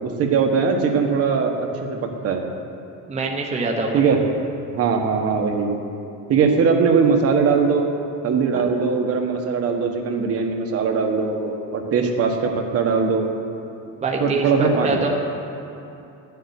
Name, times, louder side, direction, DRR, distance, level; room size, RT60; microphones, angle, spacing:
voice 1, 0.0-2.4 3.9-4.2 4.7-5.7 6.3-7.9 8.2-13.2 14.2-15.0, right 5 dB, 45° right, 3 dB, 1.3 m, -20 dB
voice 2, 3.1-4.0 8.5-8.6 14.0-15.1, right 3 dB, 20° right, 0 dB, 1.1 m, -24 dB
12.5 x 6.9 x 9.6 m, 2.8 s
cardioid pair, 160°, 33 cm